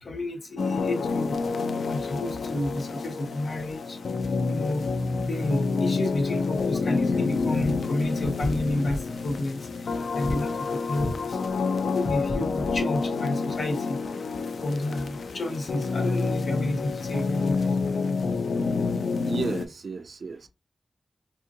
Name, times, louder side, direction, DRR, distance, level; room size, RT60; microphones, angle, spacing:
voice 1, 0.0-1.4 1.8-4.0 4.5-4.9 5.2-9.7 10.1-11.4 11.8-14.0 14.6-17.7, left 1 dB, 60° left, 0.9 m, -30 dB
sound 1, 0.6-19.7, left 4 dB, 80° left, 0.4 m, -28 dB
voice 2, 19.2-20.5, right 4 dB, 60° right, 0.3 m, -33 dB
3.5 x 2.7 x 2.5 m
wide cardioid pair, 140°, 0 cm